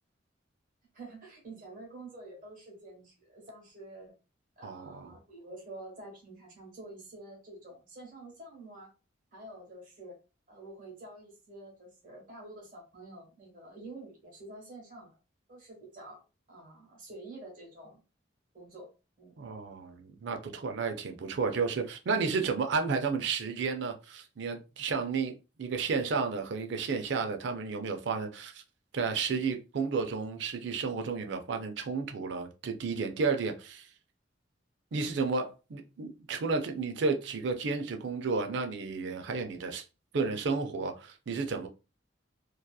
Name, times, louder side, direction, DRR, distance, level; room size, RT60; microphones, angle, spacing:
voice 1, 0.9-4.1 4.6-8.9 9.3-10.2 10.5-15.1 15.5-16.2 16.5-18.0 18.5-18.9 19.2-19.4, right 2 dB, 45° right, 1.3 m, -48 dB
voice 2, 4.6-5.1 19.4-25.3 25.6-28.6 28.9-33.9 34.9-39.8 40.1-41.7, right 4 dB, 65° right, 0.4 m, -32 dB
2.7 x 2.3 x 2.2 m
head